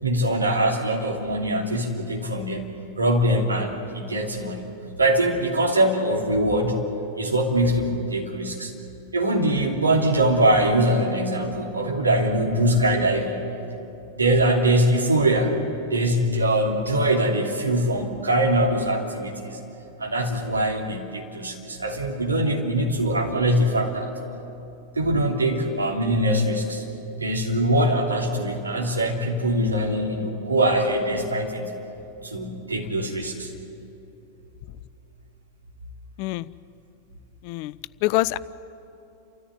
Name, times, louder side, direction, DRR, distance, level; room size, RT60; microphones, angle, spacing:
voice 1, 0.0-2.7 3.0-4.6 5.0-6.8 7.2-8.7 9.1-13.3 14.2-15.5 15.9-19.6 20.0-24.1 25.0-26.8 27.2-31.7 32.2-33.5, right 1 dB, 80° right, 0 dB, 2.9 m, -22 dB
voice 2, 38.0-38.4, left 19 dB, 45° left, 19 dB, 0.4 m, -24 dB
29.0 x 14.0 x 9.7 m, 3.0 s
figure-of-eight pair, 90°, 0 cm